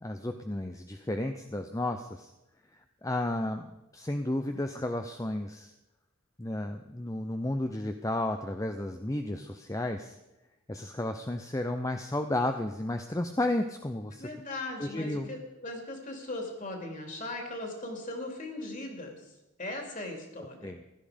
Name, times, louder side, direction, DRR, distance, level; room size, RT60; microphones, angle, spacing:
voice 1, 0.0-2.3 3.0-3.7 3.9-5.7 6.4-10.1 10.7-14.3 14.8-15.3 20.6-20.8, left 1 dB, 15° left, 6 dB, 0.6 m, -32 dB
voice 2, 14.2-19.2 19.6-20.7, left 2 dB, 40° left, 3 dB, 3.0 m, -38 dB
16.0 x 12.5 x 5.2 m, 0.96 s
head